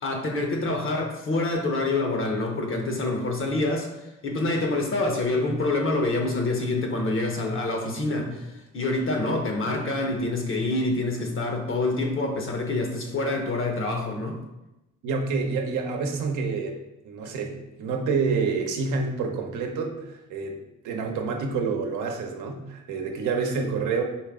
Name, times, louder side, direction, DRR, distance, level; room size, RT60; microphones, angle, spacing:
voice 1, 0.0-3.9 4.2-14.4 17.2-17.3, left 2 dB, 45° left, 3 dB, 1.0 m, -26 dB
voice 2, 15.0-16.8 17.0-24.0, right 4 dB, 80° right, 2 dB, 0.8 m, -28 dB
4.5 x 3.2 x 3.6 m, 0.95 s
cardioid pair, 90°, 30 cm